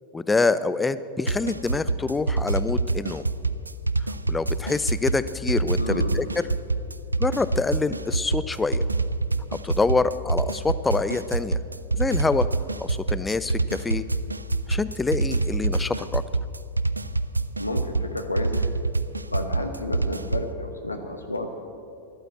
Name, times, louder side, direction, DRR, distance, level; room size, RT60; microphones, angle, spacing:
voice 1, 0.1-3.3 4.3-6.3 7.2-8.8 9.5-11.6 12.0-12.5 12.8-14.0 14.7-16.2, left 3 dB, 10° left, 15 dB, 0.5 m, -26 dB
sound 1, 1.3-20.5, right 3 dB, 80° right, 0.4 m, -26 dB
voice 2, 5.8-6.2 17.6-18.5 19.3-21.5, left 1 dB, 85° left, 4 dB, 1.1 m, -31 dB
13.5 x 11.5 x 7.9 m, 2.6 s
figure-of-eight pair, 90°, 0 cm